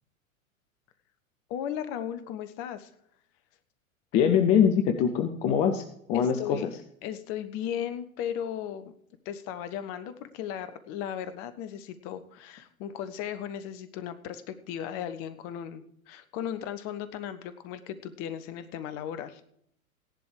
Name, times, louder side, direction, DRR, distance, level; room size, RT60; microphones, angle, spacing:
voice 1, 1.5-2.9 6.1-6.6 7.0-8.9 9.2-19.5, left 9 dB, 35° left, 12 dB, 0.9 m, -36 dB
voice 2, 4.1-6.7, left 8 dB, 15° left, 7 dB, 0.4 m, -23 dB
16.0 x 11.0 x 3.3 m, 0.72 s
figure-of-eight pair, 95°, 41 cm